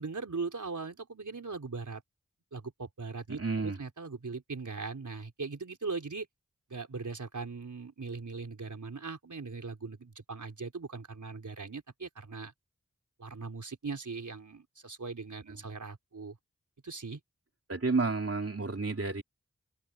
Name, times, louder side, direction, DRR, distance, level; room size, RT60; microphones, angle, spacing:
voice 1, 0.0-2.0 2.5-6.3 6.7-12.5 13.2-16.4 16.8-17.2, right 4 dB, 80° right, 4.0 m, -40 dB
voice 2, 3.3-3.8 17.7-19.2, right 3 dB, 50° right, 3.3 m, -30 dB
open air
wide cardioid pair, 50°, 30 cm